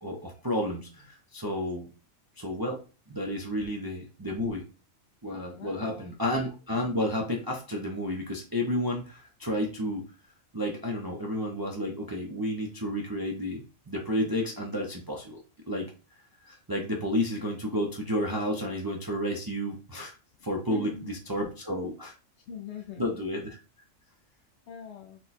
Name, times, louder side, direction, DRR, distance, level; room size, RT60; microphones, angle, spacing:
voice 1, 0.0-1.9 2.4-2.8 3.1-4.6 5.2-10.0 10.5-15.4 15.7-15.9 16.4-20.1 20.4-22.1 23.0-23.6, equal, 25° right, 0 dB, 0.5 m, -31 dB
voice 2, 5.5-6.1 20.7-21.1 22.5-23.0 24.7-25.2, left 7 dB, 65° left, 3 dB, 0.7 m, -42 dB
4.5 x 2.2 x 4.1 m, 0.34 s
omnidirectional pair, 1.4 m